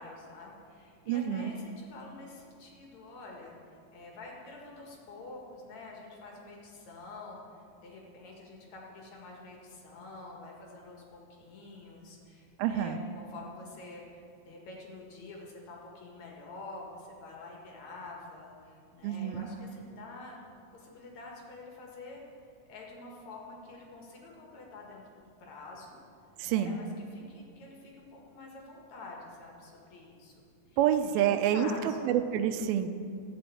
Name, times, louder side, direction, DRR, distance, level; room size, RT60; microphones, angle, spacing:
voice 1, 0.0-26.0 26.4-30.8 31.1-32.1, left 2 dB, 55° left, -1 dB, 2.7 m, -48 dB
voice 2, 1.1-1.5 12.6-13.0 19.0-19.5 26.4-26.8 30.8-31.7 32.0-32.9, right 10 dB, 85° right, 9 dB, 2.5 m, -28 dB
14.5 x 6.2 x 8.3 m, 2.5 s
omnidirectional pair, 4.2 m